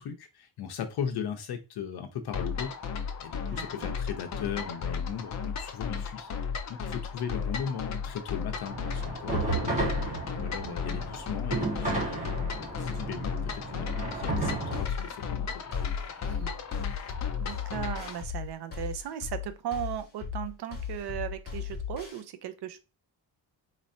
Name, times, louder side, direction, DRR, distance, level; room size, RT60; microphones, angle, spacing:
voice 1, 0.0-2.7 3.2-6.3 6.7-15.6, left 7 dB, 65° left, 0.9 m, -38 dB
sound 1, 2.3-18.2, left 6 dB, 45° left, 0.5 m, -35 dB
voice 2, 3.5-4.0 10.6-11.0 16.2-16.6 17.4-22.8, right 10 dB, 70° right, 0.6 m, -37 dB
sound 2, 8.7-14.9, right 2 dB, 20° right, 1.4 m, -33 dB
sound 3, 14.2-22.2, left 8 dB, 25° left, 1.5 m, -37 dB
4.3 x 3.1 x 2.6 m
wide cardioid pair, 170°, 41 cm